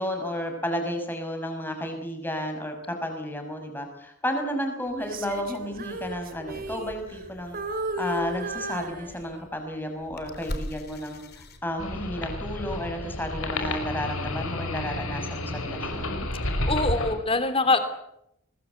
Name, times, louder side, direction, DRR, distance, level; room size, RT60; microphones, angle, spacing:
voice 1, 0.0-7.6 8.0-16.3, equal, 10° left, 4 dB, 6.1 m, -32 dB
Female singing, 5.0-7.3 7.5-9.6 10.1-10.4, right 1 dB, 40° right, 3.1 m, -35 dB
sound 1, 6.5-12.2, equal, 45° left, 3.7 m, -42 dB
sound 2, 11.8-17.1, left 1 dB, 75° left, 5.9 m, -31 dB
voice 2, 16.7-17.8, left 3 dB, 25° left, 10 dB, 3.1 m, -23 dB
25.0 x 20.5 x 8.2 m, 0.78 s
head